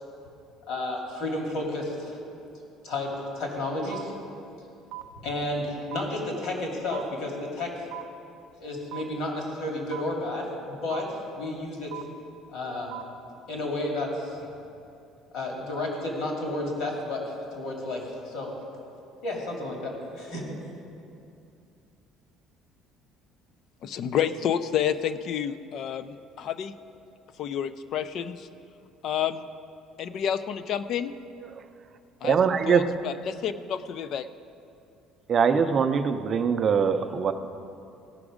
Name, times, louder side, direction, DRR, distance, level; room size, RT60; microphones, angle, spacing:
voice 1, 0.7-2.2 2.8-4.2 5.2-7.9 8.6-11.9 12.5-12.9 13.5-14.4 15.3-18.5 19.2-20.5, left 2 dB, 60° left, -1 dB, 2.3 m, -32 dB
sound 1, 3.9-4.0 4.9-5.0 5.9-6.0 6.9-7.0 7.9-8.0 8.9-9.0 9.9-10.0 10.9-11.0 11.9-12.0 12.9-13.0, right 20 dB, 80° right, 0.6 m, -36 dB
voice 2, 23.8-26.7 27.4-28.5 29.0-29.4 30.0-31.1 32.2-32.4 32.7-34.3, left 9 dB, 45° left, 13 dB, 0.4 m, -29 dB
voice 3, 32.2-33.0 35.3-37.3, right 6 dB, 30° right, 7 dB, 0.5 m, -23 dB
17.0 x 6.1 x 4.9 m, 2.6 s
cardioid pair, 165°, 0 cm